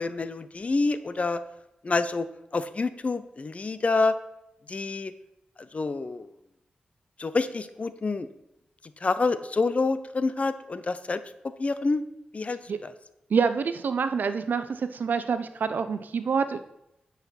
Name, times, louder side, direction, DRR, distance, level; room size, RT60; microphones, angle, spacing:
voice 1, 0.0-1.4 1.8-2.3 2.5-4.2 4.7-5.1 5.7-6.3 7.2-8.3 9.0-12.0 12.3-12.9, left 3 dB, 45° left, 12 dB, 0.8 m, -27 dB
voice 2, 13.3-16.6, right 5 dB, 75° right, 11 dB, 0.7 m, -26 dB
9.6 x 5.8 x 5.9 m, 0.84 s
cardioid pair, 65°, 3 cm